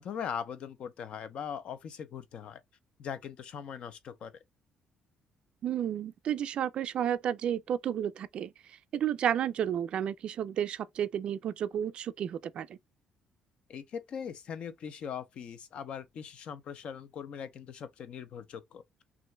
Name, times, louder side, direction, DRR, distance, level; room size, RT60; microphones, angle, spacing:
voice 1, 0.0-2.6 3.0-4.3 13.7-18.8, left 7 dB, 50° left, 0.7 m, -40 dB
voice 2, 5.6-8.5 8.9-12.8, right 9 dB, 50° right, 0.4 m, -32 dB
6.0 x 2.6 x 2.2 m
cardioid pair, 160°, 2 cm